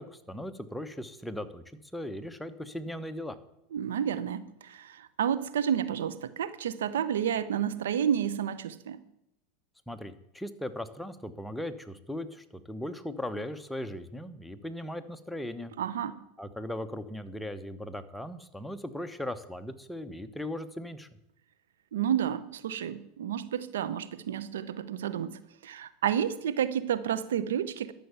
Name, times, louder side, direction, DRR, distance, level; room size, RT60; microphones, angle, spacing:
voice 1, 0.0-1.6 1.9-3.4 9.9-15.7 16.4-21.1, left 1 dB, 5° left, 1.0 m, -38 dB
voice 2, 3.7-9.0 15.8-16.2 21.9-27.9, right 9 dB, 80° right, 0.7 m, -30 dB
12.5 x 6.7 x 8.1 m
hypercardioid pair, 95°, 0 cm